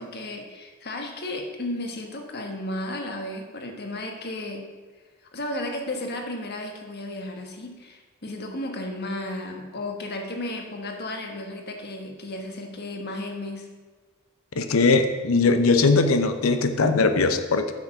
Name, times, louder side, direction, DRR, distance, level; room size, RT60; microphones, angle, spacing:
voice 1, 0.0-4.7 5.3-13.7, left 1 dB, 50° left, 3 dB, 1.4 m, -34 dB
voice 2, 14.6-17.7, left 3 dB, 80° left, 8 dB, 0.7 m, -20 dB
8.2 x 6.7 x 5.9 m, 1.4 s
head